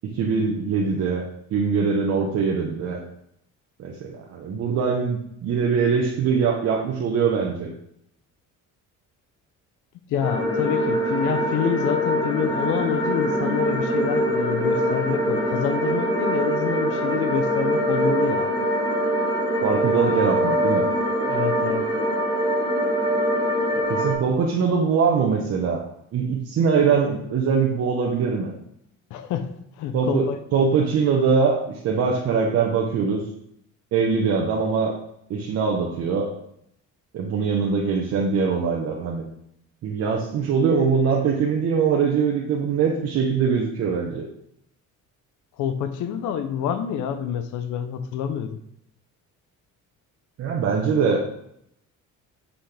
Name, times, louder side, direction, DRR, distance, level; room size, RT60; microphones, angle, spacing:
voice 1, 0.0-3.0 3.8-7.7 19.6-20.9 23.9-25.8 26.1-28.5 29.9-30.3 30.5-33.2 33.9-34.9 35.3-36.3 37.1-39.2 39.8-44.3 50.4-51.2, right 5 dB, 50° right, -2 dB, 1.1 m, -22 dB
voice 2, 10.1-18.5 21.2-21.9 29.1-29.5 29.8-30.4 45.6-48.6, left 8 dB, 70° left, 9 dB, 0.7 m, -27 dB
sound 1, 10.2-24.1, equal, 15° left, 1.6 m, -23 dB
8.2 x 5.7 x 3.4 m, 0.73 s
cardioid pair, 165°, 32 cm